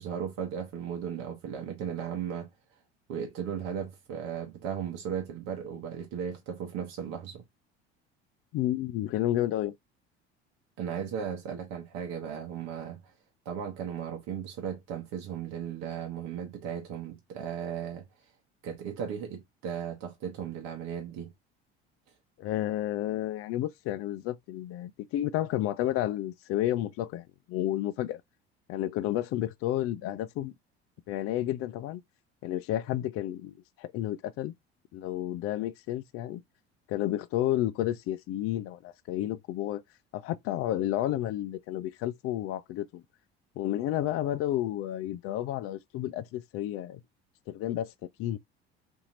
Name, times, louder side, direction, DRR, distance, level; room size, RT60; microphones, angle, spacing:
voice 1, 0.0-2.5 3.1-7.4 10.8-13.1 13.4-18.0 18.6-21.3, right 8 dB, 55° right, 0.9 m, -36 dB
voice 2, 8.5-9.8 22.4-28.2 28.7-30.5 31.1-32.0 32.4-34.5 34.9-36.4 36.9-39.8 40.1-43.0 43.6-47.0 47.5-48.4, left 13 dB, 45° left, 0.4 m, -31 dB
2.8 x 2.6 x 2.6 m
hypercardioid pair, 65°, 32 cm